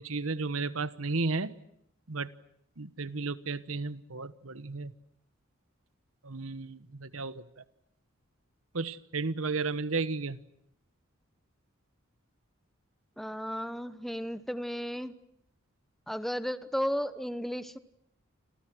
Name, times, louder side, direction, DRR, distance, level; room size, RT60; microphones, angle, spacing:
voice 1, 0.0-1.5 2.1-2.3 2.8-4.9 6.2-7.4 8.7-10.4, right 3 dB, 80° right, 15 dB, 1.2 m, -33 dB
voice 2, 13.2-15.1 16.1-17.8, equal, ahead, 13 dB, 1.0 m, -34 dB
30.0 x 26.5 x 6.3 m, 0.73 s
head